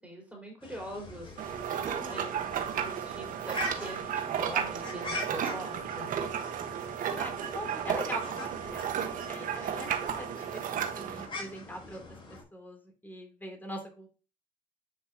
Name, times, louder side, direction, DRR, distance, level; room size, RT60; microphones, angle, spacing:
voice 1, 0.0-1.4 1.8-2.3 2.7-6.3, equal, 5° right, -2 dB, 4.3 m, -43 dB
sound 1, 0.6-12.4, left 2 dB, 30° left, 3.6 m, -43 dB
sound 2, 1.4-11.3, right 8 dB, 55° right, 1.4 m, -33 dB
voice 2, 1.8-2.3 7.1-12.2 12.5-14.1, equal, 10° left, 3 dB, 3.1 m, -43 dB
9.8 x 5.5 x 2.9 m, 0.33 s
supercardioid pair, 75°, 16 cm